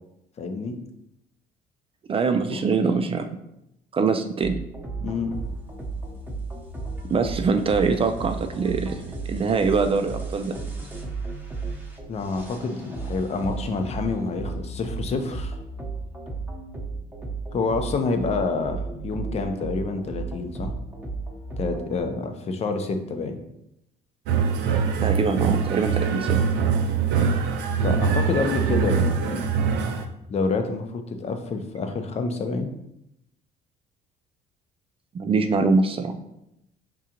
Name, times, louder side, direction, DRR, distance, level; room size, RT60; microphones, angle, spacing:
voice 1, 0.4-0.8 2.5-2.6 5.0-5.3 12.1-15.6 17.5-20.7 21.6-23.4 27.8-29.5 30.3-32.7, left 4 dB, 40° left, 6 dB, 0.7 m, -28 dB
voice 2, 2.1-3.2 3.9-4.6 7.1-9.0 9.3-10.6 25.0-26.4 35.1-36.2, right 4 dB, 35° right, 7 dB, 0.4 m, -23 dB
sound 1, 4.4-22.0, right 3 dB, 10° right, 0.9 m, -34 dB
sound 2, 24.3-30.0, right 6 dB, 85° right, 0.5 m, -23 dB
4.9 x 3.7 x 2.9 m, 0.81 s
cardioid pair, 110°, 17 cm